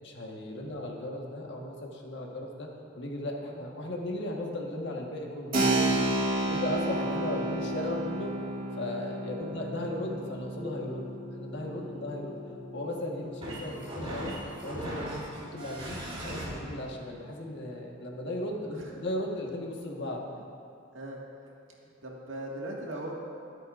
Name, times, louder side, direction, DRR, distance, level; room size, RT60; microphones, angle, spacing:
voice 1, 0.0-2.7 2.9-6.0 6.6-8.3 8.7-11.1 11.4-12.4 12.7-14.3 14.6-18.7 18.9-20.3, left 1 dB, 60° left, 0 dB, 1.5 m, -36 dB
Keyboard (musical), 5.5-13.9, right 2 dB, 45° right, 2.1 m, -32 dB
sound 1, 10.6-16.5, equal, 30° right, 3.1 m, -40 dB
voice 2, 18.6-19.0 20.9-21.5 21.8-23.1, right 1 dB, 70° right, -2 dB, 1.9 m, -41 dB
23.0 x 8.3 x 2.6 m, 2.5 s
head